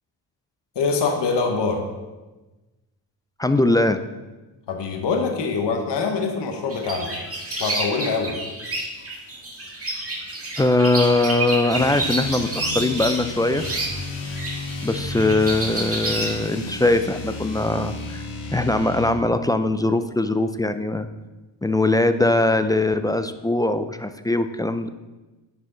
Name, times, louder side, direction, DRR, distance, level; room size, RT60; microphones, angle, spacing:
voice 1, 0.7-1.8 4.7-7.1 7.6-8.3, left 4 dB, 60° left, 3 dB, 1.2 m, -24 dB
voice 2, 3.4-4.0 10.6-13.6 14.8-18.2 18.5-21.1 21.6-24.9, left 2 dB, 10° left, 9 dB, 0.3 m, -21 dB
sound 1, 6.7-16.3, right 2 dB, 30° right, 1.9 m, -29 dB
sound 2, 11.7-19.2, left 3 dB, 85° left, 1.4 m, -33 dB
9.9 x 4.8 x 3.8 m, 1.1 s
cardioid pair, 70°, 46 cm